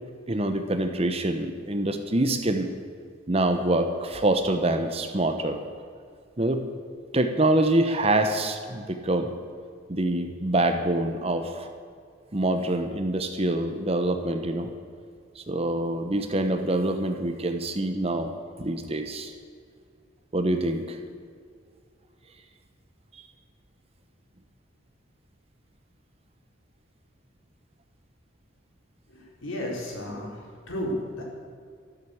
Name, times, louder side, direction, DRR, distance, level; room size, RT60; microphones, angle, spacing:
voice 1, 0.3-2.7 3.3-5.6 6.4-6.6 7.1-9.3 9.9-11.7 12.3-14.7 15.4-19.3 20.3-21.0 23.1-23.2, right 1 dB, 30° right, 7 dB, 1.0 m, -25 dB
voice 2, 29.1-31.2, left 1 dB, 85° left, -2 dB, 4.4 m, -33 dB
13.0 x 12.0 x 8.0 m, 2.2 s
head